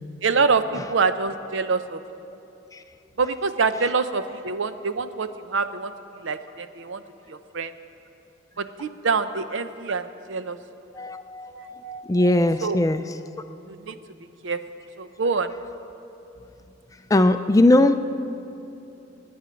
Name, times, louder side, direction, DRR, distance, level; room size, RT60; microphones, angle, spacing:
voice 1, 0.2-2.0 3.2-5.9 6.2-7.0 7.3-7.7 8.6-10.6 11.5-12.3 12.6-12.8 13.7-14.0 14.4-14.6 15.0-15.5, right 4 dB, 70° right, 11 dB, 0.6 m, -26 dB
voice 2, 11.0-13.0 17.1-18.0, left 1 dB, 15° left, 9 dB, 0.3 m, -19 dB
23.5 x 9.7 x 5.1 m, 2.8 s
head